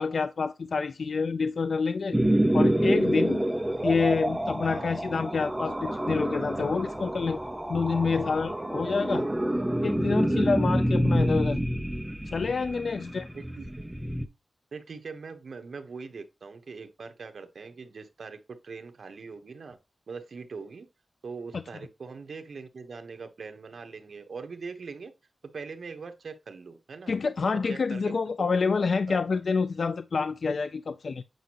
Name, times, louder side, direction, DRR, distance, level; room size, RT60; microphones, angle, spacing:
voice 1, 0.0-2.2 2.5-3.4 3.8-7.4 7.7-9.3 9.8-11.6 12.3-13.3 21.5-21.6 27.1-31.2, left 4 dB, 65° left, 0.3 m, -27 dB
sound 1, 2.1-14.3, right 1 dB, 10° right, 0.7 m, -27 dB
voice 2, 13.3-13.8 14.7-18.4 18.6-19.8 20.1-20.9 21.2-25.1 25.5-27.1 27.5-28.5 29.1-29.4, right 4 dB, 75° right, 1.0 m, -42 dB
7.9 x 5.2 x 3.0 m
wide cardioid pair, 110°, 0 cm